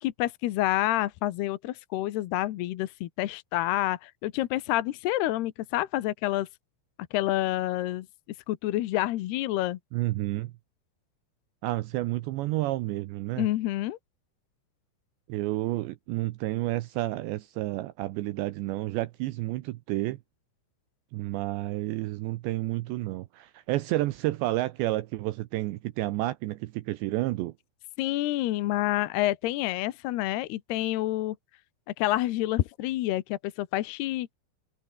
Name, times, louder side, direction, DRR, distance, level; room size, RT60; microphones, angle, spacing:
voice 1, 0.0-6.5 7.1-8.1 8.5-9.8 13.4-14.0 28.0-31.4 32.0-34.3, left 15 dB, 70° left, 2.7 m, -28 dB
voice 2, 9.9-10.5 11.6-13.5 15.3-20.2 21.1-27.5, right 17 dB, 75° right, 2.8 m, -30 dB
omnidirectional pair, 5.6 m